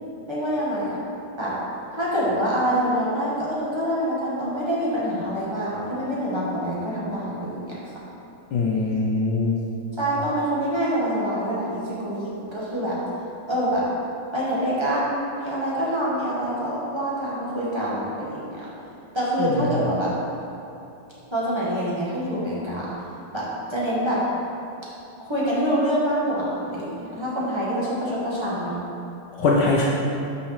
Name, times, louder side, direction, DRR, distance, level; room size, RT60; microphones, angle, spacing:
voice 1, 0.3-1.0 1.4-1.5 1.9-7.8 10.0-13.0 13.5-13.8 14.3-18.6 19.1-20.1 21.3-22.9 23.3-23.4 23.7-24.2 25.2-28.8, equal, 15° right, -8 dB, 1.4 m, -26 dB
voice 2, 8.5-9.6 19.4-19.5 29.4-29.8, left 3 dB, 70° left, -3 dB, 1.3 m, -21 dB
6.0 x 5.2 x 5.8 m, 2.8 s
omnidirectional pair, 2.1 m